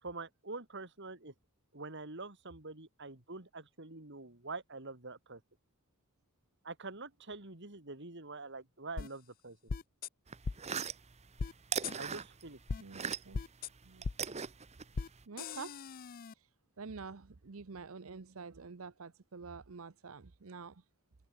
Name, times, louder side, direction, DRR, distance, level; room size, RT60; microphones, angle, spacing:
voice 1, 0.0-1.3 1.7-5.4 6.6-9.6 11.9-12.6, right 3 dB, 60° right, 3.0 m, -45 dB
sound 1, 9.0-9.1 9.7-10.1 10.4-10.6 11.4-11.5 11.8-11.9 12.7-12.8 13.3-13.7 14.0-14.2 14.9-15.1 15.4-16.3, left 4 dB, 45° left, 0.5 m, -38 dB
sound 2, 10.3-13.5 13.8-15.2, right 6 dB, 30° right, 1.0 m, -40 dB
voice 2, 12.8-13.4 13.8-14.1 15.3-15.9 16.3-16.5 16.8-20.8, right 4 dB, 75° right, 0.8 m, -48 dB
head